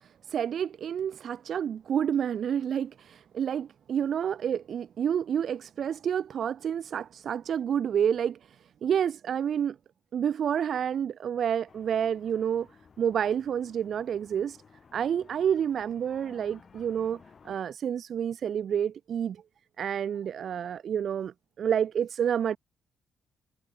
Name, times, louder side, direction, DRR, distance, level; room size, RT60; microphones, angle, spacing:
voice 1, 0.0-9.8 10.1-12.7 13.0-14.6 14.9-17.2 17.4-19.4 19.8-22.6, right 8 dB, 60° right, 0.6 m, -29 dB
sound 1, 11.7-17.6, left 5 dB, 40° left, 2.8 m, -56 dB
cardioid pair, 90°, 0 cm